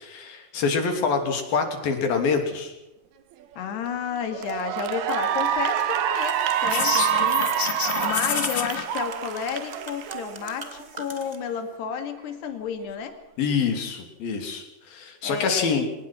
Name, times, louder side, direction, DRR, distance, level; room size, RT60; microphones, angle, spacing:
voice 1, 0.0-2.7 13.4-15.9, left 5 dB, 60° left, 5 dB, 4.8 m, -26 dB
voice 2, 3.6-13.2 15.2-15.8, left 7 dB, 80° left, 7 dB, 4.2 m, -32 dB
Cheering / Applause, 3.6-3.9 4.3-10.8, right 10 dB, 70° right, 3.2 m, -27 dB
sound 1, 6.2-11.4, right 2 dB, 20° right, 1.2 m, -43 dB
sound 2, 6.6-8.8, left 6 dB, 40° left, 2.3 m, -27 dB
25.5 x 19.5 x 6.0 m, 0.95 s
omnidirectional pair, 4.7 m